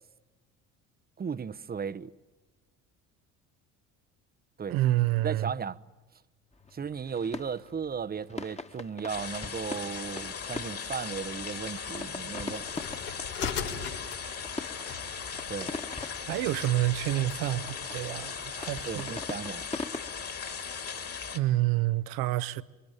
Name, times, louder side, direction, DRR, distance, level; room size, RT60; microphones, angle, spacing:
voice 1, 1.2-2.1 4.6-4.8 5.2-5.8 6.7-12.7 15.5-15.7 18.9-19.7, right 6 dB, 25° right, 0.8 m, -35 dB
voice 2, 4.7-5.5 16.3-19.2 21.3-22.6, right 16 dB, 70° right, 1.0 m, -28 dB
sound 1, 6.5-20.1, left 3 dB, 15° left, 1.6 m, -43 dB
sound 2, 9.1-21.4, left 6 dB, 40° left, 2.7 m, -38 dB
sound 3, 12.5-17.4, left 7 dB, 75° left, 4.6 m, -40 dB
28.0 x 22.5 x 8.8 m
hypercardioid pair, 60°, 37 cm